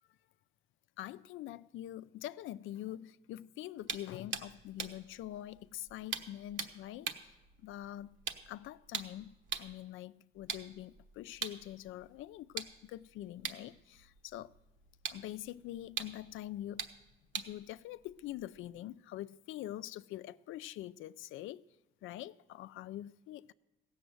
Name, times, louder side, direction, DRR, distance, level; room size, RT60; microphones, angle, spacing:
voice 1, 1.0-8.2 8.5-14.5 15.1-16.8 17.3-21.6 22.0-23.5, left 13 dB, 85° left, 0.5 m, -45 dB
sound 1, 3.8-9.8 10.3-18.8, right 6 dB, 70° right, 1.1 m, -44 dB
16.0 x 7.1 x 7.8 m
cardioid pair, 90°, 20 cm